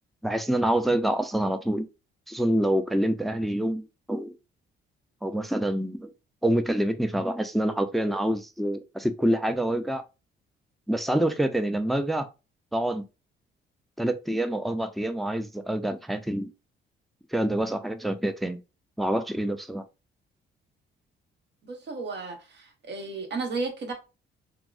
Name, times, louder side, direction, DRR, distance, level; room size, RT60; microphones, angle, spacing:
voice 1, 0.2-1.9 2.3-4.3 5.2-6.1 6.4-10.0 10.9-12.3 12.7-13.0 14.0-16.5 17.3-18.6 19.0-19.8, right 1 dB, ahead, 0.3 m, -26 dB
voice 2, 21.6-23.9, right 3 dB, 60° right, 1.0 m, -33 dB
3.5 x 2.0 x 2.3 m
cardioid pair, 90°, 20 cm